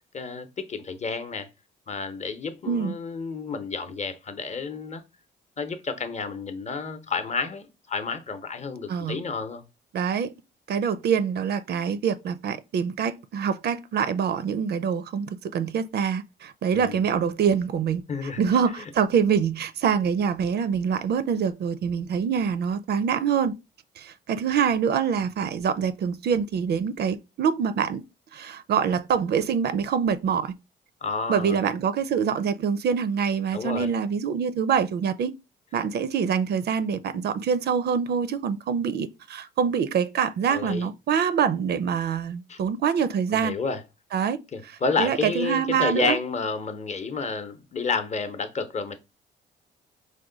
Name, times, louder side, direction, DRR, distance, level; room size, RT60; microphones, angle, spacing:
voice 1, 0.1-1.5 1.9-5.0 5.6-9.6 16.7-17.0 18.1-18.4 18.8-18.9 31.0-31.6 33.5-33.9 40.5-40.9 42.5-42.6 43.3-43.8 44.5-49.0, left 4 dB, 35° left, 0.7 m, -30 dB
voice 2, 2.7-3.0 8.9-9.2 9.9-10.3 10.7-15.3 15.5-18.0 18.4-23.5 24.0-28.0 28.3-30.5 31.3-35.3 35.7-43.5 44.1-44.4 44.6-46.2, right 7 dB, 55° right, 0.4 m, -25 dB
4.7 x 2.2 x 3.8 m
cardioid pair, 90°, 20 cm